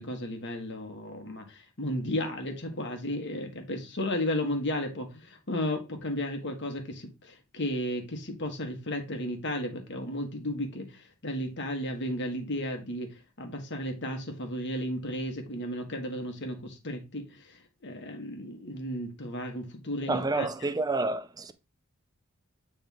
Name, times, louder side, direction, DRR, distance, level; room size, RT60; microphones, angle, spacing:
voice 1, 0.0-20.5, left 1 dB, 55° left, 1.5 m, -34 dB
voice 2, 20.1-21.5, right 3 dB, 15° right, 0.4 m, -29 dB
8.9 x 3.5 x 3.5 m
head